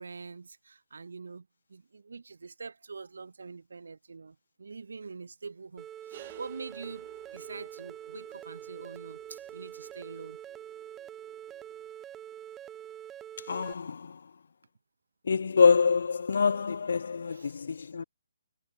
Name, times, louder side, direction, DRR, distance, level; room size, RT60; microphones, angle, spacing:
voice 1, 0.0-10.4 17.3-17.6, right 4 dB, 75° right, 3.4 m, -45 dB
sound 1, 5.8-13.7, right 10 dB, 15° right, 1.2 m, -45 dB
sound 2, 6.1-11.9, right 11 dB, 40° right, 3.6 m, -54 dB
voice 2, 13.5-14.2 15.3-18.0, left 5 dB, 65° left, 0.7 m, -25 dB
figure-of-eight pair, 145°, 0 cm